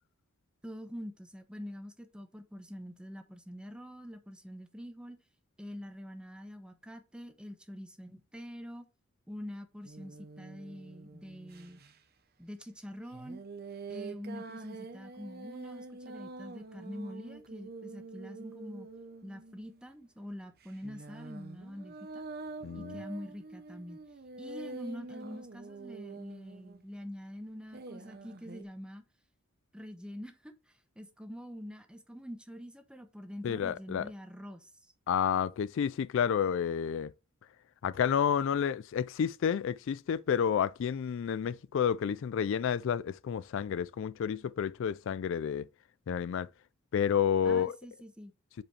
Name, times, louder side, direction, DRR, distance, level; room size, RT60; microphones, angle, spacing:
voice 1, 0.6-5.2 5.6-8.9 9.3-11.8 12.4-13.4 13.9-18.9 19.2-22.2 22.7-24.0 24.4-29.0 29.7-34.7 47.4-48.3, equal, 5° right, 0.9 m, -45 dB
sound 1, 9.8-11.9 13.1-19.8 20.6-27.0 27.7-28.6, right 3 dB, 50° right, 0.8 m, -46 dB
voice 2, 22.6-23.0 33.4-34.1 35.1-37.1 37.8-45.7 46.1-46.5 46.9-47.7, left 8 dB, 65° left, 0.3 m, -30 dB
7.5 x 5.0 x 3.2 m
head